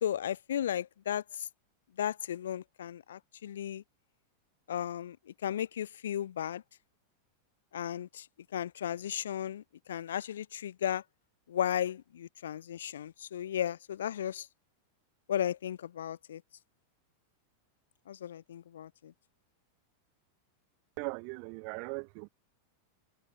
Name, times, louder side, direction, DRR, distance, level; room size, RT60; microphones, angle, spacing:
voice 1, 0.0-1.5 2.0-3.8 4.7-6.6 7.7-8.3 8.5-11.0 11.5-14.5 15.3-16.4 18.1-19.1, left 10 dB, 65° left, 0.3 m, -35 dB
voice 2, 21.0-22.3, right 40 dB or more, 45° right, 0.8 m, -39 dB
figure-of-eight pair, 90°, 0 cm